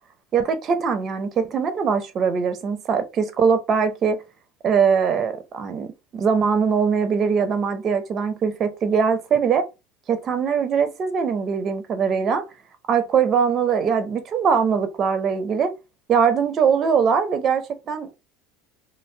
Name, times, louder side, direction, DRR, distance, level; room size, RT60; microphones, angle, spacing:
voice 1, 0.3-4.2 4.6-9.6 10.1-12.4 12.9-15.7 16.1-18.2, right 6 dB, 40° right, 0.5 m, -21 dB
2.5 x 2.1 x 3.1 m
supercardioid pair, 95°, 0 cm